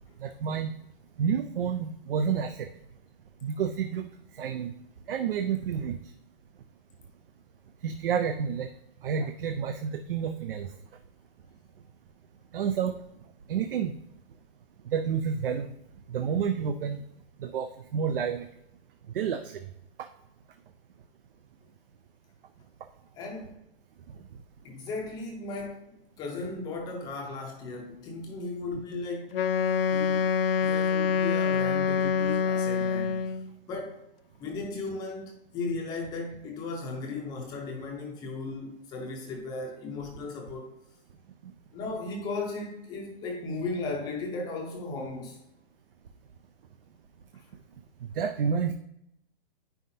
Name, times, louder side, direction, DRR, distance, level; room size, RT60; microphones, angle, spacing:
voice 1, 0.2-0.7 1.2-2.5 3.4-4.1 4.4-4.7 5.1-6.0 7.8-8.7 9.0-10.7 12.5-12.9 13.5-13.9 14.9-15.7 16.1-17.0 17.5-18.4 19.1-19.4 48.2-48.7, right 7 dB, 65° right, 0.6 m, -29 dB
voice 2, 23.2-23.6 24.6-29.4 29.9-30.3 30.6-33.2 33.7-34.0 34.4-40.7 41.7-45.4, left 3 dB, 15° left, 0.6 m, -36 dB
Wind instrument woodwind instrument, 29.3-33.5, left 6 dB, 70° left, 0.5 m, -26 dB
9.0 x 5.7 x 2.7 m
hypercardioid pair, 160°, 30 cm